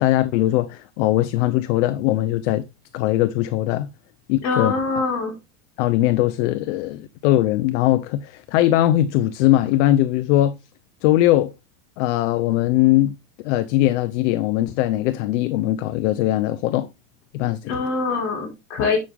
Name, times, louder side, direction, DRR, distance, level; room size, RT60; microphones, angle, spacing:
voice 1, 0.0-2.7 2.9-3.9 4.3-4.7 5.8-10.6 11.0-11.5 12.0-13.1 13.4-16.9 17.3-17.8, left 14 dB, 65° left, 0.7 m, -20 dB
voice 2, 4.4-5.3 17.6-19.0, left 4 dB, 45° left, 4.9 m, -23 dB
8.6 x 6.3 x 3.5 m
supercardioid pair, 130°, 39 cm